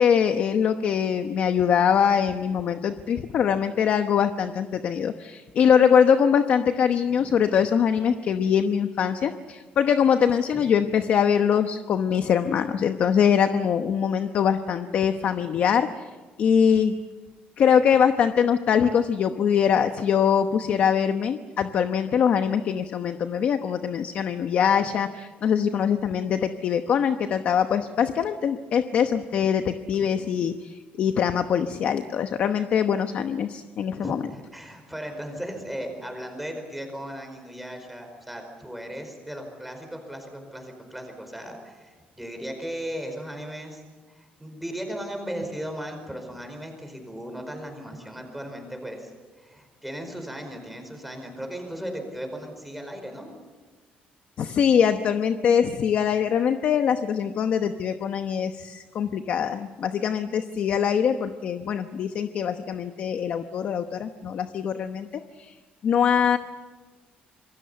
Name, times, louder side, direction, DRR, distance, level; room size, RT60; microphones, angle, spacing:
voice 1, 0.0-15.9 16.4-17.0 17.6-34.2 54.4-65.5 65.8-66.4, left 7 dB, 50° left, 8 dB, 1.0 m, -23 dB
voice 2, 34.0-43.8 44.1-49.1 49.4-53.3, equal, 5° right, 4 dB, 5.0 m, -36 dB
27.0 x 23.0 x 6.9 m, 1.3 s
cardioid pair, 160°, 3 cm